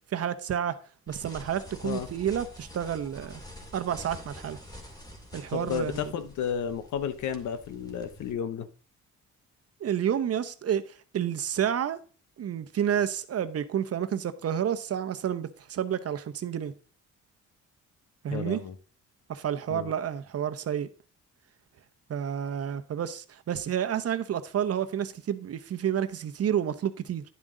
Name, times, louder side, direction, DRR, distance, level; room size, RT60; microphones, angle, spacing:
voice 1, 0.1-0.8 1.1-3.4 3.7-4.6 5.3-6.1 9.8-12.0 12.4-16.7 18.2-18.6 19.3-20.9 22.1-27.2, right 9 dB, 55° right, 0.9 m, -30 dB
sound 1, 1.1-8.3, left 1 dB, 10° left, 2.3 m, -47 dB
voice 2, 5.5-8.7 18.3-18.8 19.7-19.9, left 8 dB, 70° left, 1.0 m, -32 dB
10.5 x 7.3 x 3.8 m
cardioid pair, 90°, 30 cm